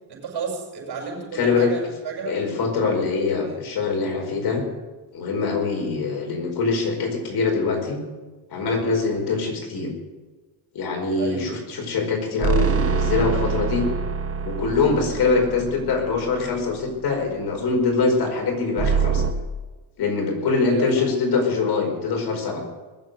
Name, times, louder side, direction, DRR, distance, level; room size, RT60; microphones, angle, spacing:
voice 1, 0.1-2.4 3.4-3.6 11.1-11.5 20.7-21.1, right 5 dB, 55° right, 0 dB, 6.6 m, -31 dB
voice 2, 1.3-1.7 2.3-4.6 5.1-8.0 8.5-9.9 10.7-13.8 14.4-19.2 20.0-22.6, left 4 dB, 55° left, 2 dB, 4.8 m, -23 dB
sound 1, 12.4-16.9 18.8-19.3, right 6 dB, 30° right, 1.6 m, -25 dB
21.0 x 7.6 x 8.0 m, 1.2 s
cardioid pair, 100°, 47 cm